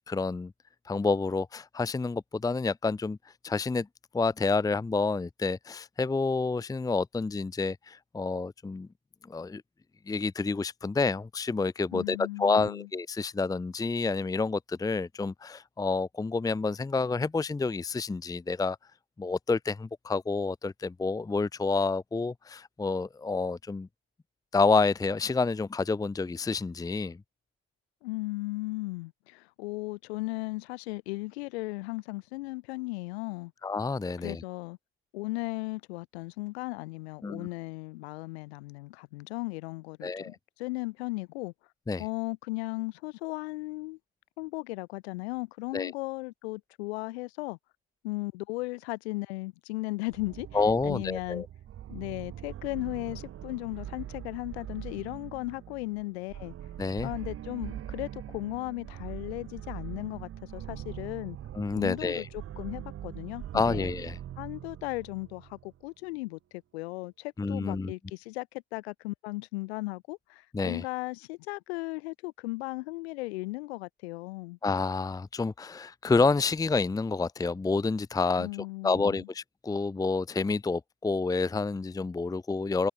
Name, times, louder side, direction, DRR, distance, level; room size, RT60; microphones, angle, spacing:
voice 1, 0.1-0.5 0.9-3.2 3.4-3.9 4.1-8.9 9.3-9.6 10.1-18.8 19.2-23.9 24.5-27.2 33.6-34.4 37.2-37.5 40.0-40.4 41.9-42.0 45.7-45.9 50.5-51.5 56.8-57.1 61.5-62.3 63.5-64.2 67.4-67.9 70.5-70.8 74.6-78.5 78.8-82.9, left 4 dB, 10° left, 0.8 m, -29 dB
voice 2, 11.9-12.9 28.0-33.5 34.2-34.8 35.1-41.5 42.0-44.0 44.4-47.6 48.0-50.5 50.8-51.4 51.9-56.5 57.0-61.4 61.7-63.9 64.4-74.6 78.4-79.3, left 23 dB, 65° left, 3.9 m, -36 dB
sound 1, 50.1-65.8, right 11 dB, 40° right, 2.4 m, -42 dB
figure-of-eight pair, 60°, 34 cm